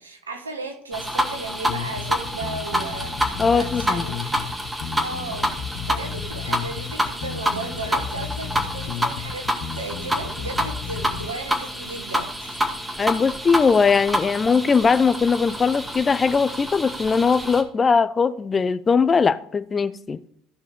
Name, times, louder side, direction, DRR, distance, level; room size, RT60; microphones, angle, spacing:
voice 1, 0.0-4.5 5.0-5.5 5.8-12.7, right 3 dB, 85° right, 1.2 m, -35 dB
sound 1, 0.9-17.6, equal, 10° right, 2.0 m, -28 dB
sound 2, 1.7-11.3, left 7 dB, 55° left, 1.2 m, -34 dB
voice 2, 3.4-4.1 13.0-20.2, left 5 dB, 30° left, 0.6 m, -20 dB
14.5 x 5.0 x 5.1 m
figure-of-eight pair, 60°, 0 cm